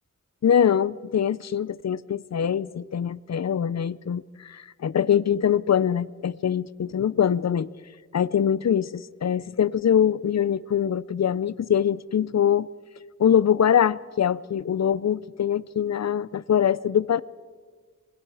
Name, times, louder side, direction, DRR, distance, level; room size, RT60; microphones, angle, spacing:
voice 1, 0.4-7.7 8.1-12.7 13.2-17.2, left 8 dB, 60° left, 0.5 m, -23 dB
26.5 x 21.0 x 4.8 m
wide cardioid pair, 85°, 31 cm